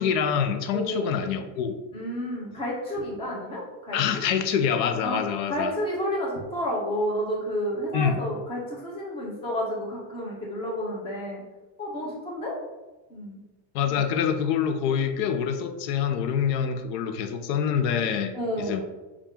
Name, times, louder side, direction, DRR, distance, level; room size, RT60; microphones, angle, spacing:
voice 1, 0.0-1.8 3.9-5.7 7.9-8.2 13.7-18.8, left 7 dB, 80° left, 8 dB, 0.7 m, -26 dB
voice 2, 0.7-1.1 1.9-4.0 5.0-5.2 5.5-11.4 11.8-12.6 13.1-13.4 18.3-18.8, equal, 10° left, -4 dB, 0.5 m, -30 dB
5.5 x 2.4 x 3.6 m, 1.2 s
cardioid pair, 175°, 49 cm